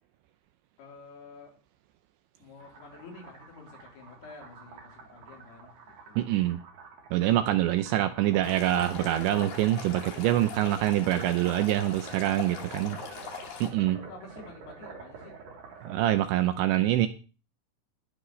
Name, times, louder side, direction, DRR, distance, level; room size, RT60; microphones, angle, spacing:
voice 1, 0.8-1.5 2.4-6.3 7.9-8.1 12.7-13.3 13.8-15.4, left 3 dB, 80° left, -1 dB, 6.5 m, -49 dB
sound 1, 2.6-16.2, right 4 dB, 55° right, 5.1 m, -48 dB
voice 2, 6.2-6.6 7.1-13.0 13.6-14.0 15.8-17.1, right 13 dB, 80° right, 9 dB, 2.7 m, -25 dB
Stream, 8.4-13.7, left 7 dB, 55° left, 4.0 m, -41 dB
20.0 x 9.7 x 3.2 m, 0.35 s
omnidirectional pair, 5.8 m